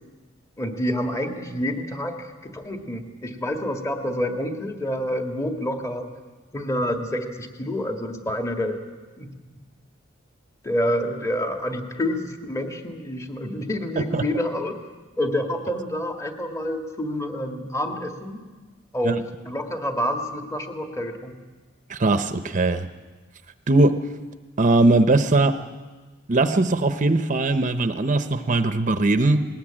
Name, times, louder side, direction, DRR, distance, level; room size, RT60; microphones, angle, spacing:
voice 1, 0.6-6.1 6.5-8.8 9.2-9.3 10.6-14.8 15.2-18.5 18.9-21.4, left 1 dB, 15° left, 4 dB, 1.8 m, -28 dB
voice 2, 21.9-22.9 23.7-24.0 24.6-25.6 26.3-29.5, right 2 dB, 40° right, 9 dB, 0.8 m, -20 dB
20.0 x 19.5 x 8.8 m, 1.3 s
head